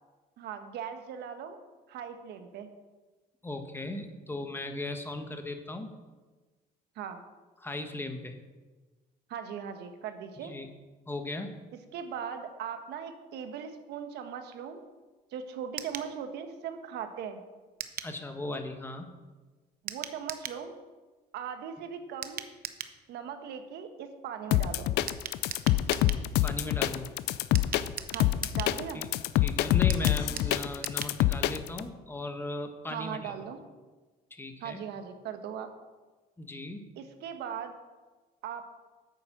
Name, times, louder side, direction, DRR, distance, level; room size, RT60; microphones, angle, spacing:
voice 1, 0.4-1.6 1.9-2.7 6.9-7.2 9.3-10.5 11.9-14.8 15.3-17.4 19.8-20.7 21.3-22.5 23.1-24.9 28.1-29.0 32.9-33.6 34.6-35.7 37.0-37.7 38.4-38.6, right 8 dB, 80° right, 7 dB, 1.3 m, -39 dB
voice 2, 3.4-5.9 7.6-8.4 10.4-10.7 11.1-11.6 18.0-19.1 26.4-27.1 28.9-29.1 29.4-33.3 34.3-34.8 36.4-36.8, left 2 dB, 15° left, 6 dB, 1.3 m, -37 dB
sound 1, 15.8-16.1 17.8-18.1 19.9-20.6 22.2-23.0 25.1-26.2 27.5-28.8 29.9-31.2 31.5-31.6 31.8-31.9, right 10 dB, 60° right, 0.8 m, -39 dB
sound 2, 24.5-31.8, left 14 dB, 80° left, 0.5 m, -26 dB
9.1 x 8.3 x 6.0 m, 1.3 s
cardioid pair, 110°, 17 cm